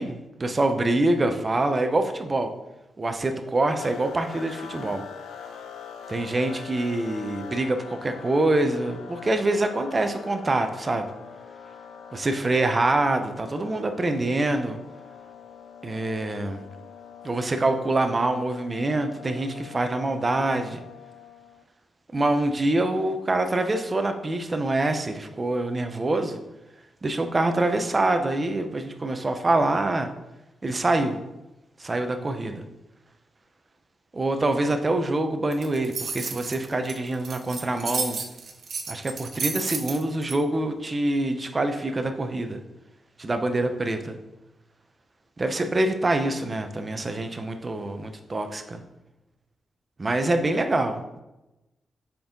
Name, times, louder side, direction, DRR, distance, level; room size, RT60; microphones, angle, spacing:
voice 1, 0.0-2.5 3.0-5.0 6.1-11.1 12.1-14.8 15.8-16.6 17.2-20.8 22.1-26.4 27.0-30.1 30.6-31.2 31.8-32.6 34.1-38.2 38.9-42.6 43.2-44.2 45.4-48.8 50.0-51.2, right 2 dB, 35° right, 7 dB, 0.7 m, -25 dB
sound 1, 3.8-21.6, left 7 dB, 90° left, 0.4 m, -43 dB
sound 2, 35.5-40.3, right 5 dB, 65° right, 0.8 m, -32 dB
5.4 x 4.7 x 3.8 m, 0.98 s
cardioid pair, 70°, 0 cm